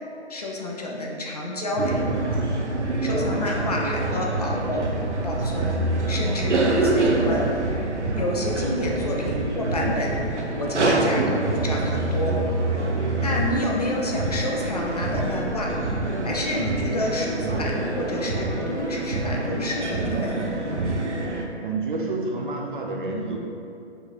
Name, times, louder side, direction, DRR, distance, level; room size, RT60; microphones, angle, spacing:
voice 1, 0.3-2.0 3.0-4.9 5.2-7.4 8.2-10.1 10.6-12.4 13.2-15.7 16.2-20.4, left 1 dB, 35° left, -2 dB, 0.5 m, -29 dB
sound 1, 1.8-21.5, right 2 dB, 90° right, 0.7 m, -25 dB
voice 2, 21.6-23.4, right 3 dB, 45° right, 0 dB, 0.6 m, -28 dB
5.3 x 4.0 x 2.4 m, 2.5 s
figure-of-eight pair, 140°, 34 cm